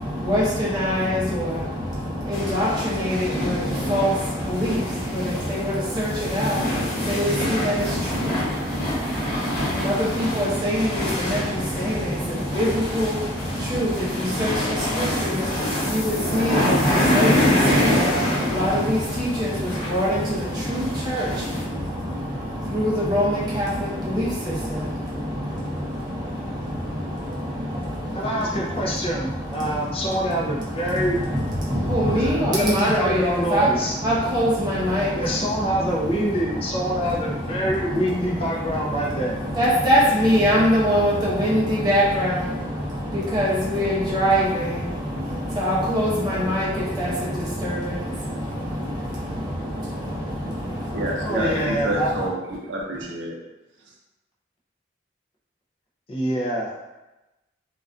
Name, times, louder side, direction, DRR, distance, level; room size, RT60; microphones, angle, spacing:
voice 1, 0.0-52.3, equal, 20° right, -7 dB, 0.6 m, -25 dB
sound 1, 2.3-21.6, left 1 dB, 60° left, 0.8 m, -26 dB
voice 2, 28.1-31.3 32.1-33.9 35.1-39.4 51.2-52.3 56.1-56.8, equal, 30° left, -3 dB, 0.4 m, -25 dB
voice 3, 50.9-53.4, right 1 dB, 80° right, -2 dB, 0.5 m, -28 dB
2.3 x 2.2 x 2.4 m, 1.0 s
head